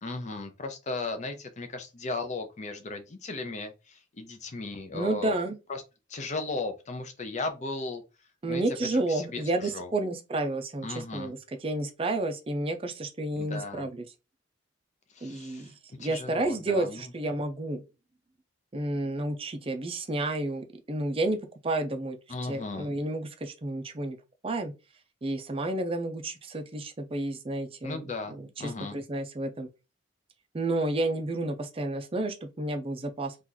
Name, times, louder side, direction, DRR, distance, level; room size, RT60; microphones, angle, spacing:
voice 1, 0.0-5.4 5.7-5.8 6.1-8.0 8.5-8.6 8.9-9.9 10.8-11.3 13.4-13.9 15.2-15.7 16.0-17.0 22.3-22.9 27.8-29.0, left 3 dB, 40° left, 0.6 m, -36 dB
voice 2, 4.9-5.6 8.4-14.0 15.2-17.8 18.7-21.4 21.6-22.2 22.4-24.2 24.4-24.7 25.2-29.7 30.5-33.4, right 2 dB, 30° right, 0.5 m, -31 dB
2.9 x 2.5 x 3.8 m
head